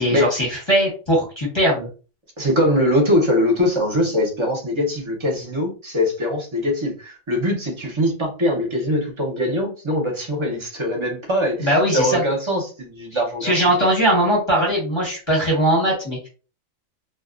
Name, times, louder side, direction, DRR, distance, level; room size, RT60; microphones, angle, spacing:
voice 1, 0.0-1.9 11.6-12.2 13.1-16.3, right 1 dB, 25° left, -5 dB, 0.9 m, -20 dB
voice 2, 2.4-13.7, left 1 dB, 25° right, 0 dB, 0.7 m, -22 dB
2.5 x 2.3 x 2.4 m, 0.36 s
omnidirectional pair, 1.4 m